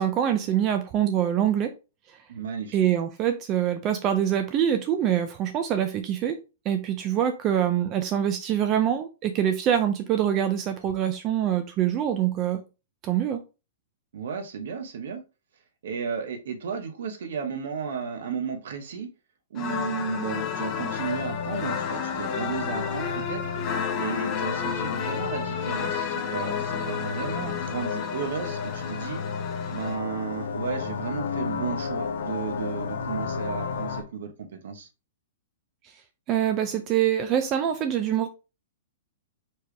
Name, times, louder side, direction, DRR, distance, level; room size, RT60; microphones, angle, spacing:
voice 1, 0.0-1.7 2.7-6.4 6.7-12.6 13.0-13.4 36.3-38.3, right 10 dB, 25° right, 0.4 m, -24 dB
voice 2, 2.3-2.9 14.1-15.2 15.8-19.1 19.5-23.5 24.0-29.2 29.7-34.9, right 6 dB, 70° right, 1.1 m, -34 dB
sound 1, 19.5-30.0, left 7 dB, 25° left, 0.6 m, -32 dB
sound 2, 19.8-34.0, left 5 dB, 75° left, 0.8 m, -33 dB
4.5 x 3.2 x 3.3 m
hypercardioid pair, 165°, 0 cm